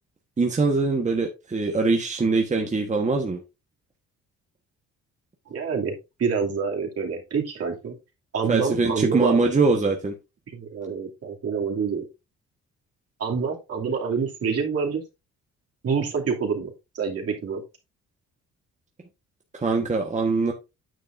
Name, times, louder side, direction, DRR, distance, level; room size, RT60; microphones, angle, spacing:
voice 1, 0.4-3.4 8.5-10.1 19.5-20.5, right 3 dB, 25° right, 1.3 m, -22 dB
voice 2, 5.5-7.9 8.3-9.4 10.5-12.1 13.2-15.0 15.8-17.6, right 6 dB, 55° right, 2.7 m, -27 dB
9.3 x 6.6 x 2.6 m
cardioid pair, 90°, 30 cm